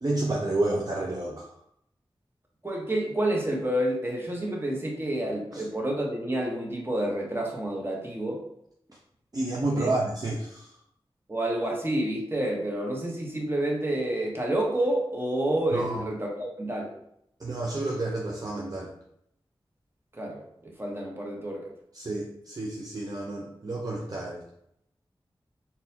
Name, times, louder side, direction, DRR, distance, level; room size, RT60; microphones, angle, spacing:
voice 1, 0.0-1.5 5.5-5.6 9.3-10.7 15.7-16.0 17.4-18.9 21.9-24.4, right 2 dB, 40° right, -2 dB, 0.5 m, -30 dB
voice 2, 2.6-8.4 9.7-9.9 11.3-16.9 20.1-21.7, right 1 dB, 25° right, -1 dB, 1.0 m, -29 dB
3.9 x 2.7 x 2.8 m, 0.75 s
wide cardioid pair, 55°, 10 cm